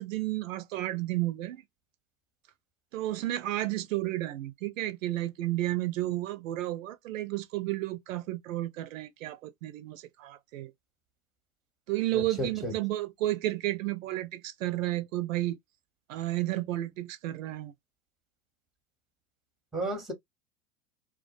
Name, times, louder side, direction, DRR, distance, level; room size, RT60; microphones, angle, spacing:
voice 1, 0.0-1.6 2.9-10.7 11.9-15.6 16.1-17.7, right 15 dB, 60° right, 0.5 m, -32 dB
voice 2, 12.1-12.7 19.7-20.1, right 1 dB, ahead, 0.7 m, -33 dB
2.3 x 2.1 x 2.4 m
hypercardioid pair, 100°, 45 cm